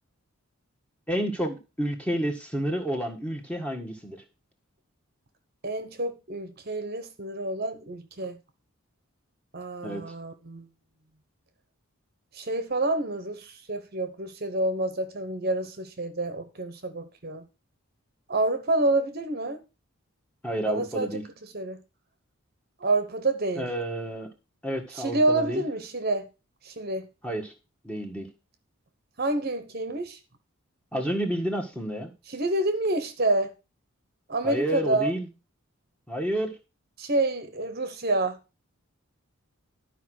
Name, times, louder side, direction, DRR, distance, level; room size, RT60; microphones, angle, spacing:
voice 1, 1.1-4.2 9.8-10.1 20.4-21.2 23.6-24.3 24.6-25.6 27.2-27.5 27.8-28.3 30.9-32.1 34.4-35.3 36.1-36.6, equal, 5° left, 1.6 m, -30 dB
voice 2, 5.6-8.4 9.5-10.7 12.3-17.4 18.3-19.6 20.7-21.8 22.8-23.6 24.9-26.3 26.6-27.1 29.2-30.2 32.3-33.5 34.3-35.1 37.0-38.4, right 2 dB, 45° right, 1.0 m, -28 dB
12.0 x 5.1 x 6.3 m
head